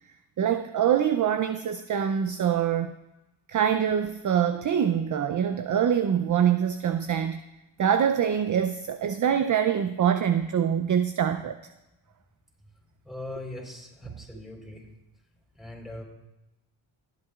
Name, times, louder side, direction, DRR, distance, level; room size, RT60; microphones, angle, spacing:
voice 1, 0.4-2.9 3.5-7.4 7.8-11.6 14.1-14.2, right 8 dB, 40° right, 10 dB, 0.5 m, -24 dB
voice 2, 13.0-14.9 15.6-16.0, left 1 dB, ahead, 0 dB, 3.8 m, -40 dB
18.5 x 8.2 x 2.4 m, 0.96 s
cardioid pair, 65°, 49 cm